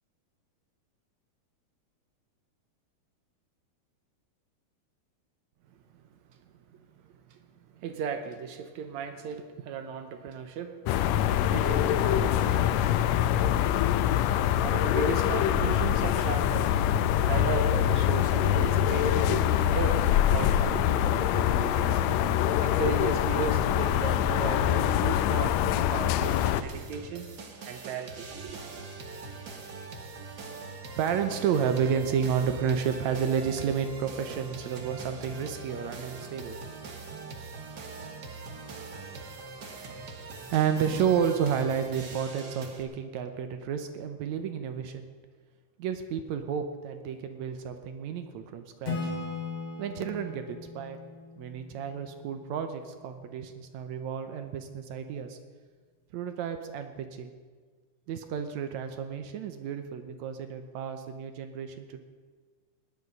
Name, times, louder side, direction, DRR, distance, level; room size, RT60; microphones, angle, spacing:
voice 1, 7.8-10.8 11.1-12.7 13.0-13.3 14.5-22.0 22.6-27.3 27.7-28.6 31.0-36.8 40.2-45.1 45.8-49.1 49.8-51.0 51.4-55.4 56.1-57.3 58.1-62.0, right 7 dB, 70° right, 8 dB, 2.0 m, -32 dB
Ambience - morning - window - city - calm - pigeon, 10.9-26.6, left 10 dB, 80° left, 1.6 m, -24 dB
sound 1, 26.2-42.8, right 4 dB, 50° right, 1.2 m, -42 dB
Acoustic guitar / Strum, 48.8-52.4, left 4 dB, 50° left, 3.1 m, -38 dB
17.5 x 10.5 x 5.4 m, 1.5 s
omnidirectional pair, 3.6 m